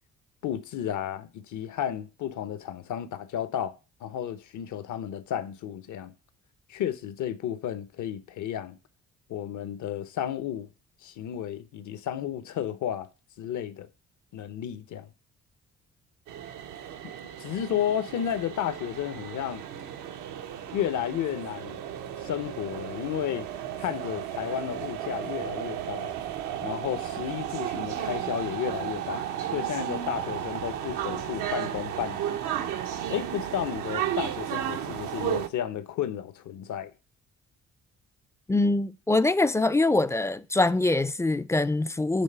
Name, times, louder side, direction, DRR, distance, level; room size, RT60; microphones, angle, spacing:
voice 1, 0.4-3.8 4.0-6.1 6.7-8.8 9.3-10.7 11.0-13.1 13.4-13.9 14.3-15.1 17.0-17.1 17.4-19.6 20.7-21.8 22.2-23.5 23.8-26.1 26.6-29.2 29.5-32.2 33.1-36.9, left 10 dB, 75° left, 0.9 m, -32 dB
sound 1, 16.3-35.5, right 10 dB, 85° right, 0.8 m, -34 dB
voice 2, 38.5-42.2, left 2 dB, 10° left, 0.4 m, -24 dB
7.3 x 3.4 x 5.4 m
cardioid pair, 90°, 30 cm